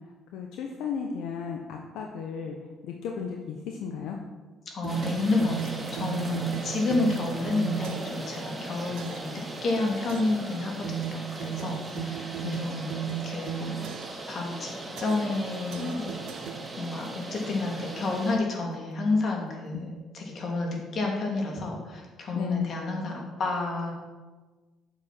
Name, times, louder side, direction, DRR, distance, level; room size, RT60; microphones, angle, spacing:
voice 1, 0.3-2.6 2.8-4.2 11.8-12.1 12.4-12.6 22.3-22.7, left 7 dB, 80° left, 2 dB, 1.0 m, -34 dB
voice 2, 4.7-16.1 16.8-23.9, left 3 dB, 55° left, 0 dB, 2.9 m, -30 dB
sound 1, 4.8-8.3 9.0-9.4 10.1-10.5 10.8-14.3 15.0-15.4 15.7-17.0, right 14 dB, 85° right, 0.5 m, -36 dB
sound 2, 4.9-18.4, right 1 dB, 25° right, 2.6 m, -39 dB
9.4 x 7.2 x 6.2 m, 1.3 s
supercardioid pair, 80°, 0 cm